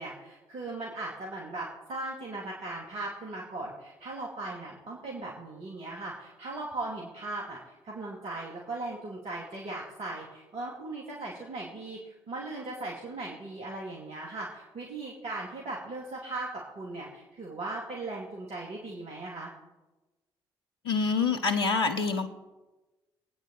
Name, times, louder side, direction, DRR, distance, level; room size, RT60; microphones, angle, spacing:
voice 1, 0.0-19.5, right 2 dB, 50° right, -4 dB, 2.6 m, -38 dB
voice 2, 20.8-22.3, left 4 dB, 85° left, 7 dB, 0.9 m, -26 dB
21.5 x 9.2 x 4.2 m, 1.1 s
figure-of-eight pair, 40°, 13 cm